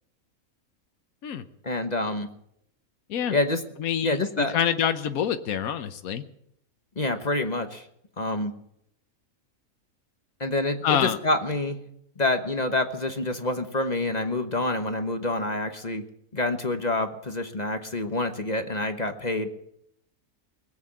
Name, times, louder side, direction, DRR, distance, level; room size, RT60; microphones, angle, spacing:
voice 1, 1.6-2.3 3.3-3.6 4.0-4.6 7.0-7.8 8.2-8.5 10.4-11.8 12.2-16.0 16.3-19.5, left 2 dB, 35° left, 7 dB, 1.1 m, -27 dB
voice 2, 3.8-6.2 10.8-11.2, left 9 dB, 80° left, 9 dB, 1.3 m, -26 dB
20.0 x 8.4 x 8.7 m, 0.74 s
omnidirectional pair, 1.5 m